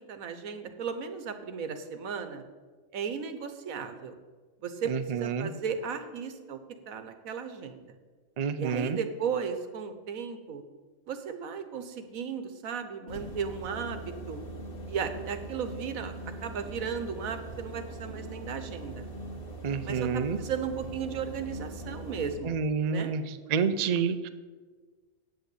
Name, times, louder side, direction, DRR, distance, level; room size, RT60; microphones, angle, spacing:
voice 1, 0.0-2.4 2.9-4.2 4.6-6.6 6.9-7.8 8.6-10.6 11.1-14.4 14.9-16.1 16.4-19.1 19.8-22.6 22.9-23.1, right 6 dB, 85° right, 8 dB, 1.4 m, -35 dB
voice 2, 4.9-5.5 8.4-9.0 19.6-20.4 22.5-23.2 23.5-24.3, right 6 dB, 55° right, 10 dB, 0.4 m, -28 dB
sound 1, 13.1-22.3, right 2 dB, 40° left, 1.8 m, -41 dB
8.0 x 7.7 x 8.3 m, 1.4 s
omnidirectional pair, 1.4 m